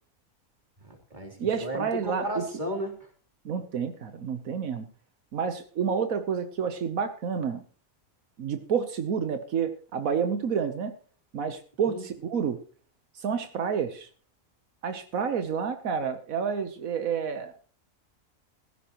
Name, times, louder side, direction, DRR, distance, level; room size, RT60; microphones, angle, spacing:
voice 1, 0.8-3.1 11.9-12.0, equal, 35° right, 2 dB, 3.4 m, -34 dB
voice 2, 1.4-2.4 3.4-4.8 5.3-7.6 8.4-10.9 11.3-12.6 13.1-14.1 14.8-17.5, right 6 dB, 80° right, 8 dB, 1.5 m, -29 dB
16.5 x 15.0 x 3.0 m, 0.41 s
omnidirectional pair, 1.4 m